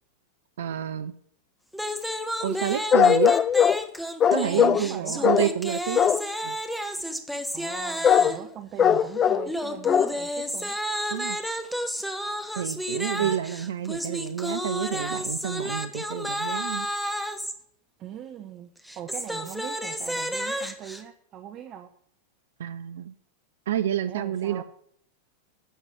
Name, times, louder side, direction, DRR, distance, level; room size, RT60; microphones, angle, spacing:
voice 1, 0.6-1.1 2.4-3.4 4.3-6.1 6.4-6.6 11.1-11.4 12.6-16.9 22.6-23.1 23.7-24.6, right 10 dB, 60° right, 12 dB, 0.5 m, -29 dB
sound 1, 1.7-8.5 9.5-17.5 18.8-21.0, equal, ahead, 1.1 m, -32 dB
sound 2, 2.9-3.9 4.2-4.9 5.2-5.5 6.0-6.3 8.0-8.3 8.8-9.5 9.8-10.2 10.6-10.7, left 8 dB, 25° left, 0.4 m, -20 dB
voice 2, 4.5-5.3 7.5-10.8 13.2-13.4 18.0-21.9 24.1-24.6, right 10 dB, 35° right, 8 dB, 0.9 m, -40 dB
11.0 x 7.4 x 7.7 m, 0.65 s
figure-of-eight pair, 90°, 0 cm